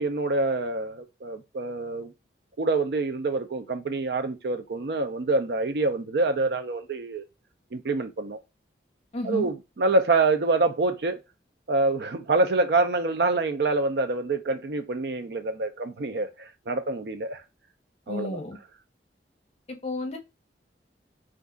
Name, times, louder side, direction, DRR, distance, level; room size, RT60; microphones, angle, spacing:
voice 1, 0.0-2.1 2.6-7.2 7.7-8.4 9.2-11.2 11.7-17.4 18.1-18.4, right 3 dB, 60° right, 0.4 m, -26 dB
voice 2, 9.1-9.5 18.1-18.6 19.7-20.2, left 2 dB, 35° left, 0.7 m, -32 dB
2.5 x 2.3 x 3.6 m
head